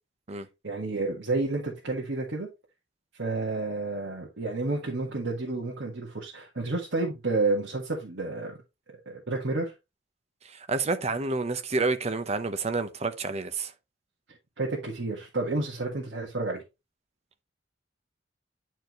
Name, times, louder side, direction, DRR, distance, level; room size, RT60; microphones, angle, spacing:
voice 1, 0.6-2.5 3.2-8.6 9.0-9.7 14.6-16.6, right 2 dB, 60° right, 1.6 m, -30 dB
voice 2, 10.4-13.7, right 3 dB, 35° right, 0.8 m, -29 dB
10.0 x 4.6 x 3.0 m
head